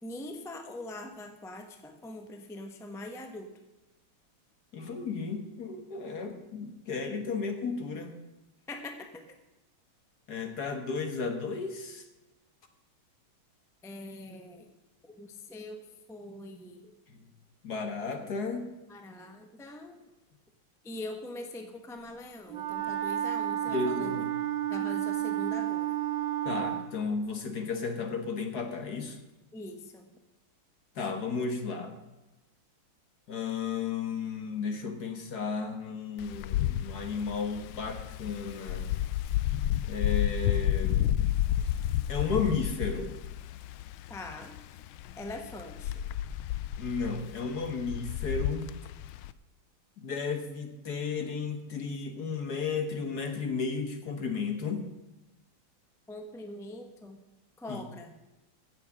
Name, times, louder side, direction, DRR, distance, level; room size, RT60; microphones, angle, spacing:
voice 1, 0.0-3.5 8.7-9.1 13.8-14.7 15.0-15.8 16.1-16.9 18.9-20.0 20.8-24.1 24.7-25.9 29.5-30.1 44.1-44.6 45.1-46.1 56.1-57.2 57.6-58.1, left 1 dB, ahead, 5 dB, 0.8 m, -42 dB
voice 2, 4.7-8.1 10.3-12.0 17.6-18.7 23.7-24.3 26.4-29.2 30.9-32.0 33.3-38.8 39.8-41.0 42.1-43.1 46.8-48.6 50.0-54.8 57.7-57.8, left 5 dB, 50° left, 6 dB, 1.7 m, -33 dB
Wind instrument woodwind instrument, 22.5-26.9, right 11 dB, 70° right, 2.1 m, -31 dB
Wind, 36.2-49.3, left 12 dB, 80° left, 1.4 m, -31 dB
15.5 x 7.3 x 6.2 m, 1.0 s
omnidirectional pair, 2.3 m